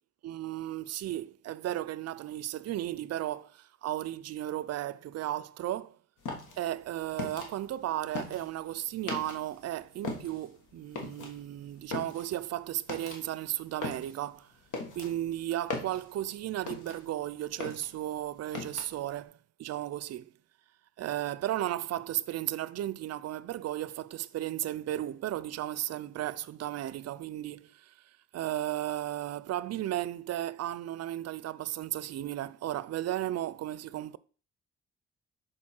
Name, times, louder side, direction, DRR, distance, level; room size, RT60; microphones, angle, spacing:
voice 1, 0.2-6.0 6.6-14.5 15.0-19.3 19.6-20.3 21.0-27.9 28.3-34.2, right 13 dB, 60° right, 0.4 m, -35 dB
sound 1, 6.2-9.6 9.9-17.2 17.5-19.1, left 3 dB, 80° left, 1.6 m, -40 dB
6.4 x 4.4 x 4.4 m
cardioid pair, 90°, 30 cm